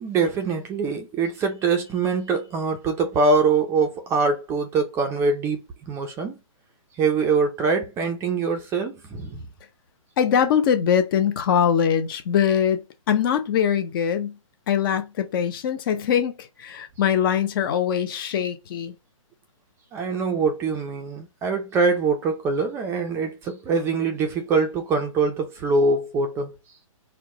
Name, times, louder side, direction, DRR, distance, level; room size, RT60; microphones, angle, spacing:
voice 1, 0.0-5.6 5.9-6.4 7.0-9.4 19.9-26.5, right 4 dB, 15° right, 0.5 m, -23 dB
voice 2, 10.2-12.8 13.1-14.4 14.7-18.9, left 8 dB, 40° left, 0.8 m, -22 dB
4.5 x 2.3 x 4.0 m
hypercardioid pair, 145°, 18 cm